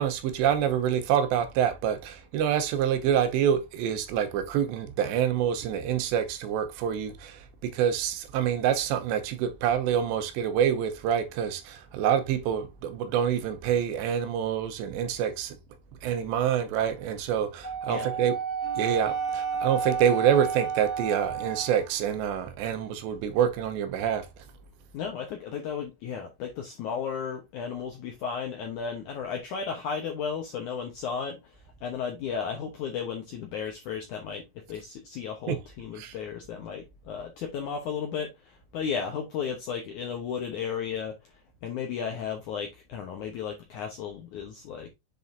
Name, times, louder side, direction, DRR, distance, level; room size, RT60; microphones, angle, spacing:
voice 1, 0.0-15.6 16.0-18.4 18.8-24.3 35.5-35.6 36.0-36.2, right 9 dB, 85° right, 3.1 m, -26 dB
Wind instrument woodwind instrument, 17.6-21.8, right 6 dB, 35° left, 2.1 m, -31 dB
Bowed string instrument, 18.6-22.3, right 6 dB, 55° right, 3.3 m, -47 dB
voice 2, 24.9-44.9, left 6 dB, 75° left, 1.8 m, -34 dB
7.7 x 5.2 x 2.6 m
omnidirectional pair, 4.9 m